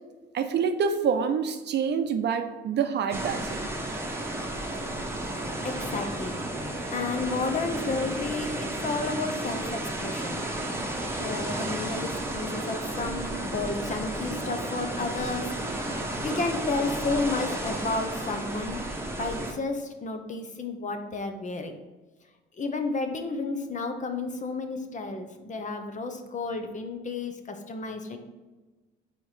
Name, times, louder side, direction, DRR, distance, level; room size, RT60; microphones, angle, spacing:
voice 1, 0.3-3.6, right 6 dB, 60° right, 8 dB, 0.6 m, -27 dB
sound 1, 3.1-19.5, right 1 dB, 10° right, 1.0 m, -32 dB
voice 2, 5.6-6.4 6.9-10.4 11.2-15.9 16.2-18.8 19.2-21.7 22.6-28.2, left 3 dB, 40° left, 6 dB, 0.8 m, -32 dB
4.4 x 4.3 x 5.0 m, 1.2 s
cardioid pair, 90°, 20 cm